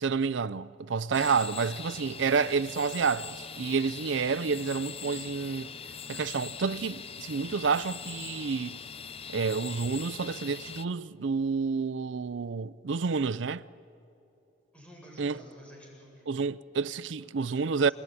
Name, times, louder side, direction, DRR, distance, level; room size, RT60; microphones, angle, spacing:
voice 1, 0.0-5.7 6.1-8.8 9.3-13.6 15.2-15.4 16.3-17.9, right 5 dB, 90° right, 0.5 m, -29 dB
sound 1, 1.1-10.9, left 7 dB, 30° left, 0.6 m, -42 dB
voice 2, 14.7-16.2 17.4-17.9, equal, 5° left, 7.7 m, -51 dB
29.0 x 20.0 x 9.7 m
head